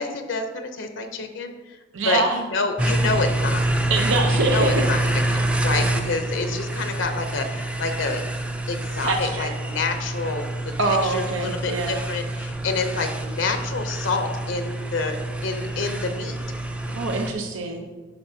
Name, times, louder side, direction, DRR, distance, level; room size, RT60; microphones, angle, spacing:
voice 1, 0.0-1.8 2.0-3.7 4.3-5.0 5.3-8.2 8.7-10.4 10.9-15.2 15.4-16.4, left 3 dB, 70° left, 6 dB, 0.6 m, -28 dB
voice 2, 1.9-2.4 3.9-4.7 9.0-9.5 10.8-12.1 16.9-17.9, right 3 dB, 85° right, 3 dB, 0.7 m, -24 dB
sound 1, 2.8-17.3, right 1 dB, 5° right, 0.4 m, -26 dB
10.0 x 5.8 x 2.7 m, 1.3 s
head